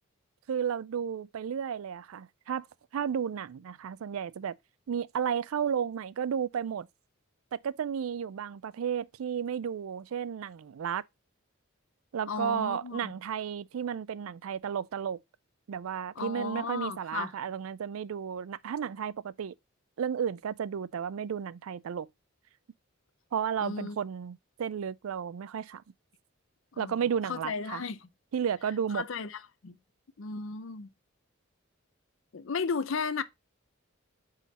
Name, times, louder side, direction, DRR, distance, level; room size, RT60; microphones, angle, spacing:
voice 1, 0.5-2.7 2.9-4.6 4.9-6.9 7.5-11.0 12.1-15.2 15.7-19.5 20.0-22.1 23.3-25.8 26.8-27.8 28.3-29.1, right 7 dB, 90° right, 0.4 m, -33 dB
voice 2, 12.3-13.1 16.2-17.3 23.6-24.0 26.8-26.9 27.3-28.0 28.9-29.3 29.6-29.7 30.2-30.9 32.3-33.2, left 5 dB, 65° left, 0.6 m, -34 dB
8.3 x 3.8 x 4.1 m
head